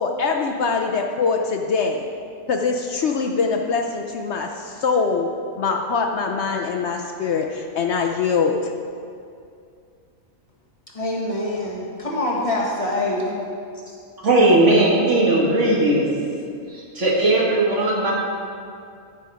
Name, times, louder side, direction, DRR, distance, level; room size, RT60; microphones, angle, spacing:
voice 1, 0.0-2.0 2.5-5.3 5.6-8.6, left 5 dB, 60° left, 2 dB, 0.9 m, -23 dB
voice 2, 10.9-13.4 13.9-14.0, left 1 dB, 25° left, -5 dB, 1.7 m, -25 dB
voice 3, 14.2-16.1 16.7-18.1, right 2 dB, 60° right, -4 dB, 2.2 m, -18 dB
14.5 x 5.7 x 4.9 m, 2.4 s
omnidirectional pair, 1.4 m